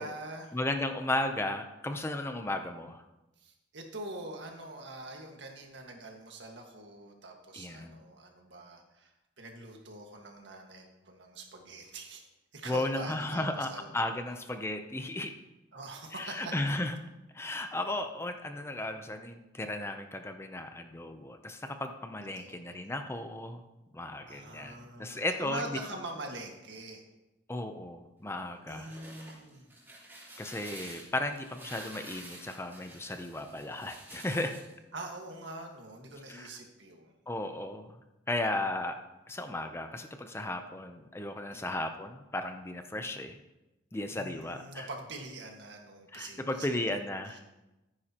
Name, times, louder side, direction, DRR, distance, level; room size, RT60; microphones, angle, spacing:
voice 1, 0.0-0.6 3.4-9.1 9.4-12.2 12.5-13.9 15.7-16.5 22.4-22.6 24.3-27.0 28.7-29.7 34.9-37.1 41.5-41.6 44.1-46.8 47.3-47.4, right 2 dB, 80° right, 2 dB, 1.7 m, -44 dB
voice 2, 0.5-3.0 7.5-8.0 12.7-15.3 16.1-17.0 17.3-23.6 23.9-25.8 27.5-29.0 30.4-34.5 36.3-36.6 37.3-38.0 38.3-39.0 39.3-43.4 43.9-44.9 46.1-47.4, left 1 dB, 15° left, 7 dB, 0.6 m, -35 dB
sound 1, 28.6-34.7, right 1 dB, 10° right, 3.5 m, -49 dB
14.0 x 9.7 x 3.0 m, 1.0 s
head